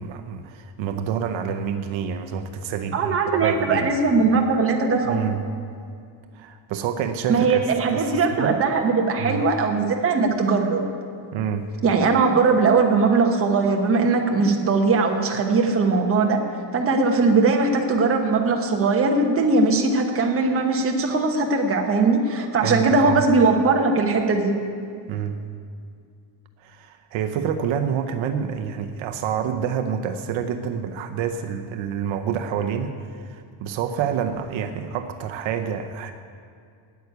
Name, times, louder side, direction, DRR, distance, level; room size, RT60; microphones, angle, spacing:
voice 1, 0.0-3.9 5.0-5.5 6.3-7.6 7.9-8.6 9.2-9.4 11.3-11.7 22.6-23.2 25.1-25.4 26.6-36.1, right 8 dB, 70° right, 6 dB, 0.9 m, -28 dB
voice 2, 2.9-5.2 7.3-10.8 11.8-16.4 16.7-24.5, right 4 dB, 30° right, 2 dB, 1.2 m, -20 dB
9.2 x 8.4 x 9.5 m, 2.3 s
cardioid pair, 165°, 47 cm